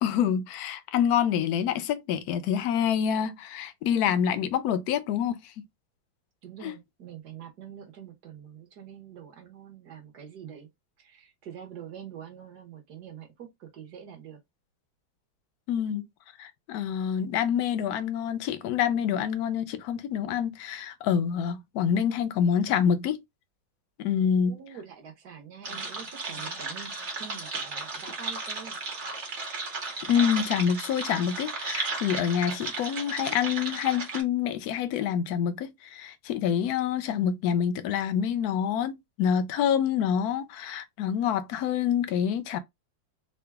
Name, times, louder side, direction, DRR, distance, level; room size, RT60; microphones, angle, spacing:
voice 1, 0.0-5.4 6.6-6.7 15.7-16.1 16.4-23.2 24.0-24.6 30.1-42.6, left 8 dB, 70° left, 0.9 m, -27 dB
voice 2, 6.4-10.7 11.0-14.4 24.4-28.8, right 8 dB, 60° right, 1.5 m, -45 dB
sound 1, 25.6-34.2, right 3 dB, 45° right, 1.2 m, -35 dB
3.9 x 2.2 x 3.3 m
omnidirectional pair, 2.1 m